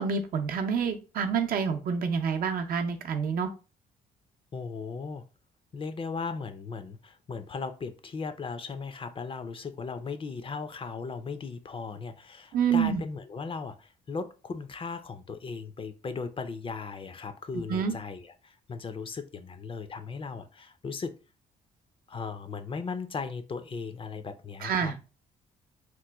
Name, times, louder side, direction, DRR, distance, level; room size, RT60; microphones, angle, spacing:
voice 1, 0.0-3.5 12.5-13.0 17.7-17.9 24.6-24.9, right 6 dB, 60° right, 4 dB, 0.6 m, -27 dB
voice 2, 4.5-5.2 5.7-21.2 22.1-25.0, left 4 dB, 35° left, 9 dB, 0.4 m, -37 dB
3.0 x 2.1 x 3.4 m, 0.32 s
cardioid pair, 80°, 17 cm